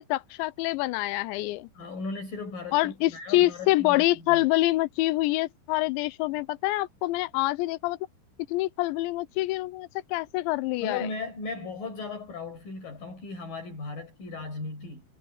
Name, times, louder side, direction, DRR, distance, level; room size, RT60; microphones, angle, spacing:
voice 1, 0.0-1.7 2.7-8.0 8.5-11.1, left 18 dB, 85° left, 3.0 m, -26 dB
voice 2, 1.7-4.0 4.3-4.4 10.8-15.0, left 3 dB, 50° left, 7.9 m, -37 dB
omnidirectional pair, 5.2 m